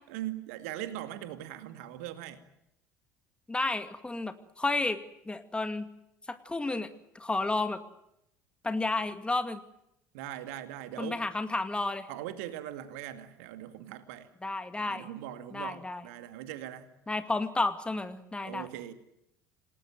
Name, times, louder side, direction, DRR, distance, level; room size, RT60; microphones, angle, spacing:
voice 1, 0.1-2.4 10.1-11.2 12.1-14.3 14.8-16.9 18.4-18.9, right 12 dB, 60° right, 10 dB, 2.3 m, -40 dB
voice 2, 3.5-5.0 5.3-5.9 6.3-6.9 7.1-7.8 8.6-9.6 11.0-12.1 14.4-15.1 15.5-16.0 17.1-18.7, left 2 dB, 10° left, 10 dB, 2.2 m, -31 dB
28.0 x 19.5 x 9.2 m, 0.81 s
figure-of-eight pair, 60°, 9 cm